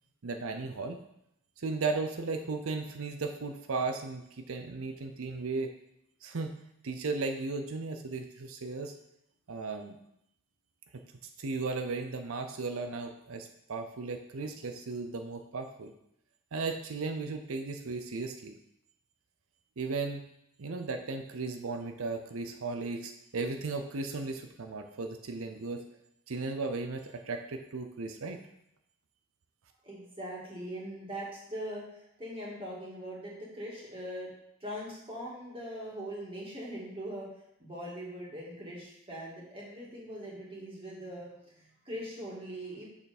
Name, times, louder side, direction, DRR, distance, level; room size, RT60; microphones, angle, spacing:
voice 1, 0.2-1.0 1.6-5.7 6.2-6.5 6.8-8.9 9.5-10.0 10.9-11.0 11.4-15.9 16.5-18.6 19.8-20.2 20.6-25.8 26.3-28.4, right 3 dB, 80° right, 6 dB, 0.6 m, -36 dB
voice 2, 29.8-34.3 34.6-37.3 37.6-42.9, equal, 25° right, -5 dB, 2.1 m, -41 dB
6.6 x 5.7 x 4.2 m, 0.78 s
head